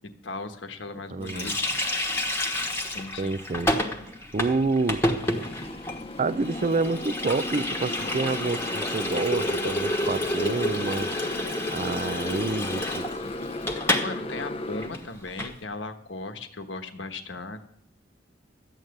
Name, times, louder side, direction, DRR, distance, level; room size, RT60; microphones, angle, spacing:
voice 1, 0.2-1.7 2.9-3.4 13.7-17.6, left 3 dB, 70° left, 7 dB, 1.3 m, -37 dB
voice 2, 1.1-1.5 3.2-3.7 4.3-5.1 6.2-11.1 11.7-13.1, right 3 dB, 40° right, 13 dB, 0.5 m, -28 dB
Water tap faucet, 1.3-14.1 14.4-14.5 14.8-15.5, left 1 dB, 15° left, 1.2 m, -30 dB
Motorcycle, 5.2-14.9, left 2 dB, 30° left, 0.6 m, -35 dB
12.5 x 9.1 x 6.6 m, 0.71 s
head